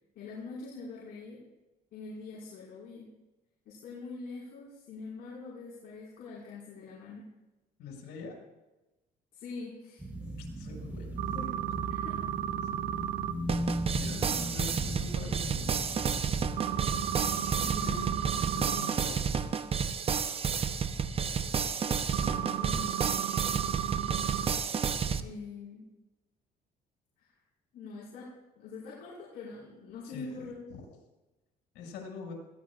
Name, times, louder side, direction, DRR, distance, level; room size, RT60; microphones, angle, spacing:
voice 1, 0.1-1.4 1.9-3.1 3.6-7.3 9.3-10.1 11.3-11.6 11.9-12.2 14.3-14.5 17.5-18.3 21.8-23.2 25.2-25.9 27.2-27.3 27.7-30.6, left 3 dB, 65° left, -6 dB, 5.2 m, -44 dB
voice 2, 7.8-8.4 10.4-11.2 13.9-16.2 17.8-18.1 18.5-19.3 30.0-30.9 31.7-32.3, left 4 dB, 85° left, -1 dB, 5.9 m, -44 dB
sound 1, 10.0-18.5, right 1 dB, 10° right, 4.0 m, -38 dB
sound 2, 11.2-13.3 16.6-18.9 22.1-24.5, right 12 dB, 70° right, 1.0 m, -34 dB
sound 3, 13.5-25.2, right 6 dB, 35° right, 0.8 m, -31 dB
21.0 x 16.5 x 2.5 m, 1.0 s
cardioid pair, 110°, 17 cm